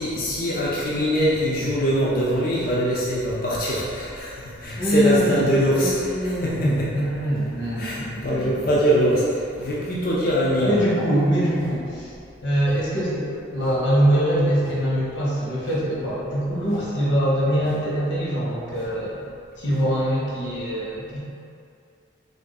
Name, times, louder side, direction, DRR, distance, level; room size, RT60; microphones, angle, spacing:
voice 1, 0.0-6.9 7.8-9.3 9.6-10.8, equal, 45° left, -6 dB, 0.5 m, -23 dB
sound 1, 4.5-4.9 5.5-5.8 6.6-6.9 7.5-7.8 8.5-8.9 9.5-9.8 10.5-10.8 11.5-11.8 12.6-12.8 13.5-13.9 14.6-14.8 15.6-15.9 16.6-16.9 17.6-17.9 18.7-19.0 19.6-19.9 20.6-20.7, equal, 35° right, 0.7 m, -42 dB
voice 2, 4.8-5.4 5.7-8.7 10.6-12.1 12.4-19.2 19.6-21.2, equal, 75° left, -6 dB, 1.1 m, -23 dB
3.4 x 2.6 x 3.9 m, 2.4 s
head